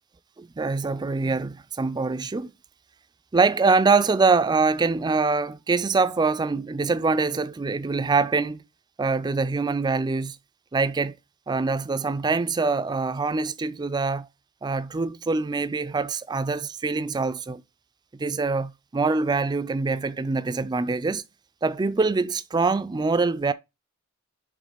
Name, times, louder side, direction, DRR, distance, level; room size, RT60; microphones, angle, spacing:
voice 1, 0.4-2.5 3.3-8.6 9.0-10.4 10.7-11.1 11.5-14.3 14.6-17.6 18.2-21.2 21.6-23.5, right 4 dB, 20° right, 0.3 m, -24 dB
5.3 x 3.6 x 4.9 m
head